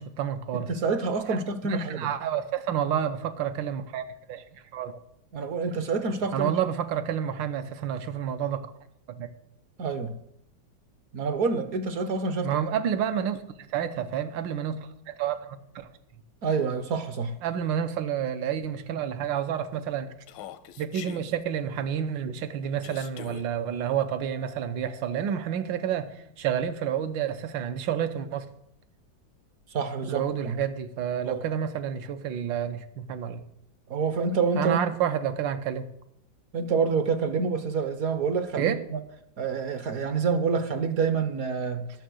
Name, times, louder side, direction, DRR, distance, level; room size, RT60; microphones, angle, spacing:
voice 1, 0.0-0.7 1.3-5.0 6.3-8.7 9.1-9.3 12.4-15.9 17.4-20.1 20.8-28.5 30.0-33.4 34.6-35.9 38.6-38.8, right 9 dB, 85° right, 9 dB, 1.4 m, -29 dB
voice 2, 0.5-2.1 5.3-6.5 9.8-10.2 11.1-12.6 16.4-17.4 29.7-30.6 31.2-31.4 33.9-34.8 36.5-39.0 39.4-41.9, right 5 dB, 60° right, 10 dB, 1.0 m, -27 dB
Human voice, 20.3-21.2 22.8-23.5, left 9 dB, 85° left, 1.4 m, -42 dB
10.0 x 6.6 x 6.2 m, 0.76 s
omnidirectional pair, 2.0 m